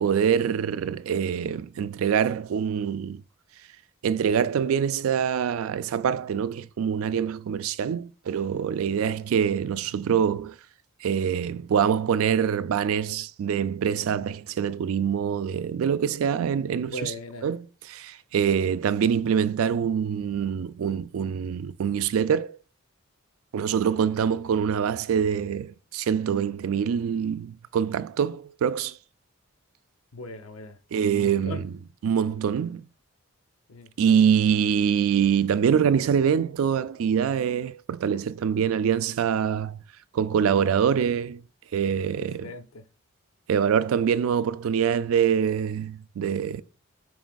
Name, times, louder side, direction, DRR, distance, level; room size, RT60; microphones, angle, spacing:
voice 1, 0.0-3.2 4.0-10.6 11.0-17.1 17.4-22.6 23.5-29.0 30.9-32.8 34.0-39.8 40.1-41.4 41.7-42.5 43.5-46.6, right 7 dB, 75° right, 0.3 m, -25 dB
voice 2, 16.9-17.5 30.1-30.8 31.2-31.7 33.7-33.9 42.2-42.9 44.2-44.3, left 2 dB, 80° left, 0.7 m, -39 dB
6.2 x 3.4 x 2.2 m
head